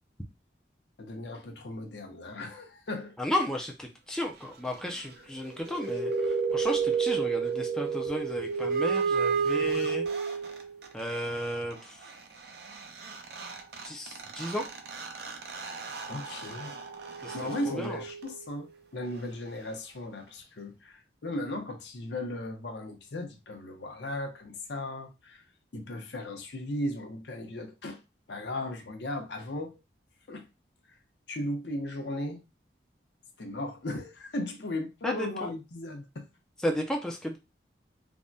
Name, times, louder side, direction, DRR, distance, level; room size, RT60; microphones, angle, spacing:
voice 1, 1.0-3.2 5.2-5.3 16.1-16.8 17.3-25.4 25.7-28.0 28.3-29.8 30.3-30.5 30.9-31.0 31.3-32.4 33.4-36.2, left 1 dB, 70° left, 0.7 m, -36 dB
voice 2, 3.2-10.0 10.9-12.0 13.8-14.6 17.2-17.3 17.7-18.0 35.0-35.5 36.6-37.4, equal, 5° left, 0.4 m, -33 dB
sound 1, 5.5-10.9 12.8-12.9 13.0-18.5, right 5 dB, 60° right, 0.5 m, -31 dB
3.4 x 2.1 x 2.6 m
head